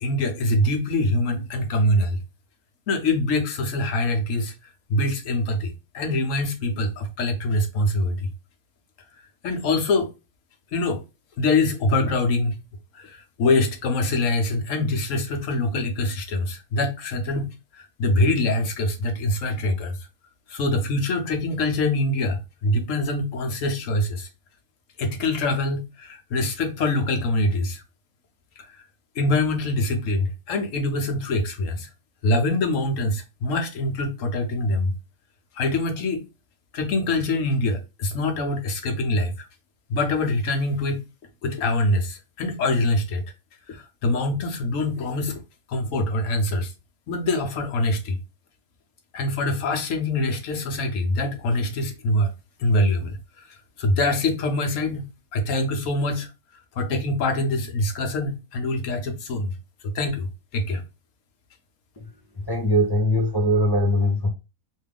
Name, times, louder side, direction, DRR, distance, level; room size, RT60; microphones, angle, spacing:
voice 1, 0.0-2.2 2.9-4.5 4.9-8.3 9.4-10.1 10.7-11.0 11.4-12.6 12.9-20.0 20.5-24.3 25.0-27.8 29.2-31.9 32.2-34.9 35.6-36.2 36.7-39.5 39.9-41.0 41.4-43.2 43.7-45.4 45.7-46.7 47.1-48.2 49.1-52.3 52.6-55.1 55.3-56.3 56.7-59.5 59.9-60.8, left 2 dB, 70° left, 1.1 m, -24 dB
voice 2, 62.5-64.3, equal, 35° left, 0.4 m, -21 dB
3.2 x 2.3 x 3.4 m
omnidirectional pair, 1.5 m